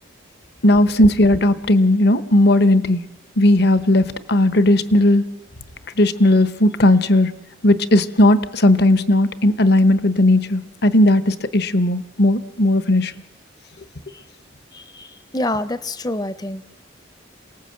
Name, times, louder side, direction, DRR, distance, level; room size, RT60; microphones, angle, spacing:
voice 1, 0.6-3.0 3.4-5.2 6.0-7.3 7.6-13.1, left 1 dB, 60° left, 13 dB, 1.0 m, -16 dB
voice 2, 14.7-16.6, left 1 dB, 20° left, 14 dB, 0.7 m, -27 dB
27.5 x 18.5 x 7.8 m, 1.1 s
head